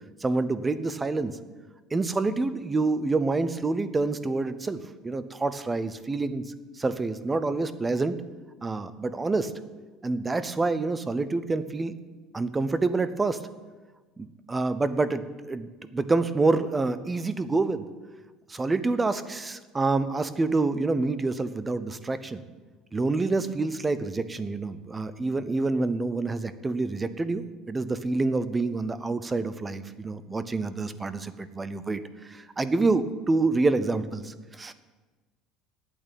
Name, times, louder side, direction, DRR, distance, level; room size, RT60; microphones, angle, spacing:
voice 1, 0.2-1.3 1.9-6.4 6.8-8.1 8.6-9.5 10.0-11.9 12.3-13.4 14.2-17.9 18.5-22.4 22.9-34.7, right 3 dB, 15° right, 13 dB, 0.6 m, -27 dB
8.9 x 8.6 x 9.1 m, 1.3 s
cardioid pair, 160°, 0 cm